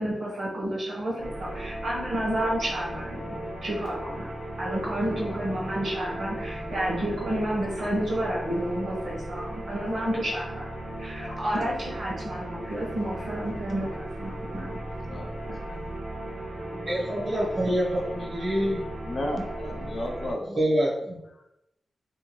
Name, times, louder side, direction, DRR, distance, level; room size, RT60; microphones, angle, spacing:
voice 1, 0.0-4.3 4.6-10.7 11.0-14.8 15.1-15.2 15.5-15.6, right 1 dB, 60° right, -4 dB, 0.9 m, -30 dB
sound 1, 1.2-20.3, right 1 dB, 85° right, 1.1 m, -36 dB
voice 2, 16.9-18.8 19.8-19.9 20.6-21.2, equal, 40° right, -7 dB, 0.6 m, -26 dB
voice 3, 19.0-20.5, left 1 dB, 50° left, 2 dB, 0.5 m, -33 dB
2.7 x 2.1 x 2.9 m, 0.86 s
wide cardioid pair, 130°, 0 cm